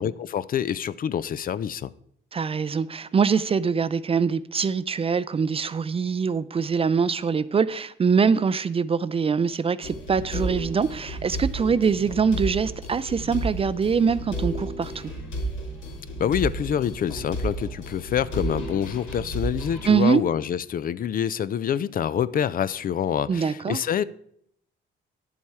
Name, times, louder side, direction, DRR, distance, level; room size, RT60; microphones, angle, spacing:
voice 1, 0.0-1.9 16.2-24.0, left 9 dB, 45° left, 0.4 m, -26 dB
voice 2, 2.3-15.1 19.8-20.2 23.3-23.8, right 6 dB, 30° right, 0.4 m, -23 dB
sound 1, 9.8-19.9, right 1 dB, 80° left, 2.9 m, -32 dB
9.6 x 7.3 x 4.7 m
cardioid pair, 90°, 20 cm